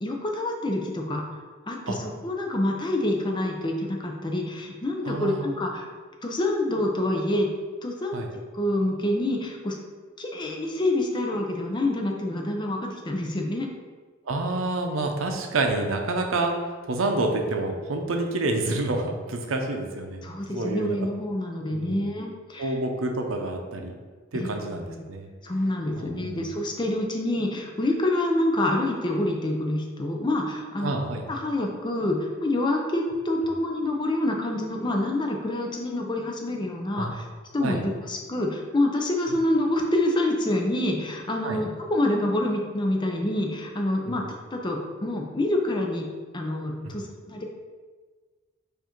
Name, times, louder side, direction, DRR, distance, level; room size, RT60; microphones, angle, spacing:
voice 1, 0.0-1.2 1.7-5.9 6.2-7.5 7.8-8.2 8.5-9.8 10.2-13.7 20.2-22.7 24.3-25.1 25.4-31.0 31.3-37.2 37.5-46.1 46.3-47.4, left 1 dB, 25° left, 1 dB, 0.5 m, -27 dB
voice 2, 5.0-5.5 8.1-8.3 14.3-16.5 16.9-21.0 21.7-22.1 22.6-24.0 24.3-25.3 26.0-26.5 30.8-31.2 37.0-37.1 37.6-37.8 41.4-41.6 44.1-44.2 46.8-46.9, right 2 dB, 80° right, 3 dB, 0.6 m, -28 dB
4.6 x 2.6 x 4.4 m, 1.4 s
head